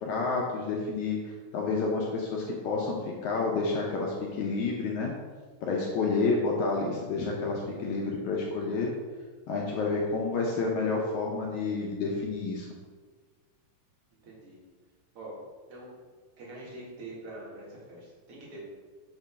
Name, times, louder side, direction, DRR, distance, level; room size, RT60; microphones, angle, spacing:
voice 1, 0.0-1.2 1.5-5.1 5.6-8.9 9.5-12.7, left 3 dB, 75° left, -2 dB, 1.7 m, -29 dB
voice 2, 14.2-14.6 15.1-15.4 15.7-15.9 16.4-18.6, right 2 dB, 50° right, -5 dB, 2.1 m, -44 dB
7.0 x 3.0 x 5.6 m, 1.4 s
omnidirectional pair, 4.1 m